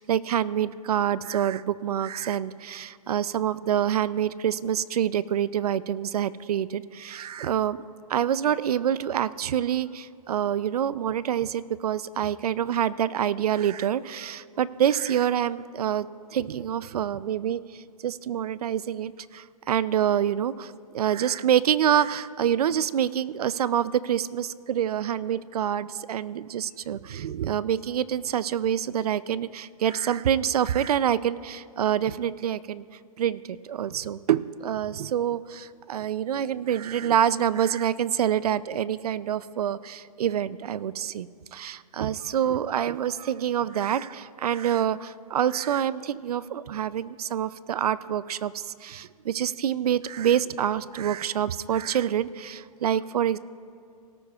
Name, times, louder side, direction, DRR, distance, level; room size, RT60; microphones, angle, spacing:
voice 1, 0.0-7.8 8.1-32.8 33.2-53.4, right 9 dB, 75° right, 18 dB, 0.5 m, -26 dB
18.0 x 13.0 x 2.4 m, 2.5 s
hypercardioid pair, 175°, 20 cm